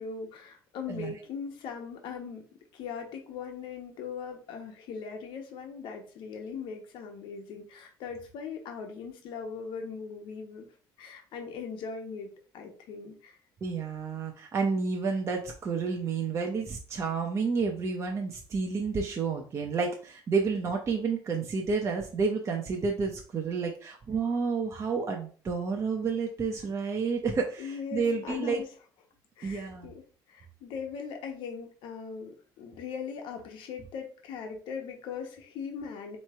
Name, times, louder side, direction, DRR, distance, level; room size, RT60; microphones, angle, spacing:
voice 1, 0.0-2.4 2.7-10.7 11.0-13.4 27.6-28.7 29.4-36.2, left 6 dB, 75° left, 3 dB, 1.1 m, -40 dB
voice 2, 13.6-28.6 29.4-29.9, right 5 dB, 35° right, 1 dB, 0.7 m, -30 dB
3.6 x 3.1 x 4.4 m, 0.40 s
cardioid pair, 120°, 8 cm